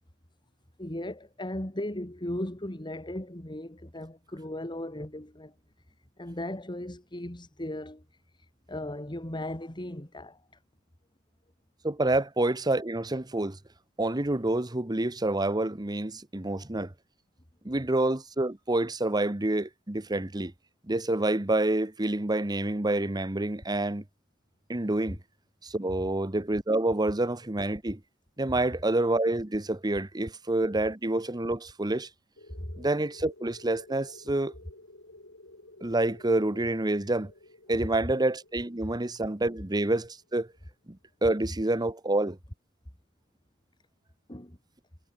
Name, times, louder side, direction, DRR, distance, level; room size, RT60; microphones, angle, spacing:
voice 1, 0.8-5.5 6.2-8.0 8.7-10.3 44.3-44.5, left 1 dB, 20° left, 2.5 m, -37 dB
voice 2, 11.8-13.6 14.0-16.9 17.6-20.5 20.9-24.0 24.7-25.2 25.6-28.0 28.4-32.1 32.8-34.5 35.8-37.3 37.7-40.5 40.9-42.4, right 2 dB, 20° right, 1.1 m, -28 dB
sound 1, 32.4-40.7, left 2 dB, 65° left, 7.3 m, -53 dB
head